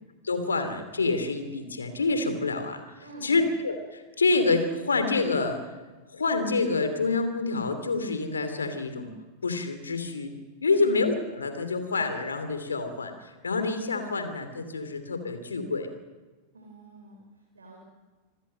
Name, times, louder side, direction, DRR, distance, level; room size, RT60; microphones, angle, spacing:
voice 1, 0.2-2.9 3.2-5.6 6.1-9.1 9.4-10.3 10.6-15.9, left 3 dB, 75° left, 8 dB, 2.9 m, -27 dB
voice 2, 3.0-3.5 10.6-10.9 16.5-17.8, right 1 dB, 75° right, 1 dB, 4.5 m, -46 dB
27.0 x 15.0 x 7.9 m, 1.3 s
figure-of-eight pair, 90°, 0 cm